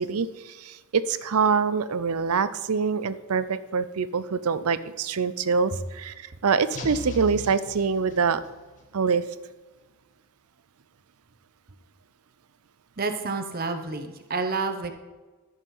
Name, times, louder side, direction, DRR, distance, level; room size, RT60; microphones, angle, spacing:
voice 1, 0.0-8.4 8.9-9.2, right 5 dB, 80° right, 14 dB, 0.6 m, -25 dB
sound 1, 6.7-8.6, left 3 dB, 35° left, 1.7 m, -38 dB
voice 2, 13.0-14.9, right 4 dB, 45° right, 7 dB, 1.0 m, -29 dB
13.0 x 6.5 x 5.5 m, 1.3 s
head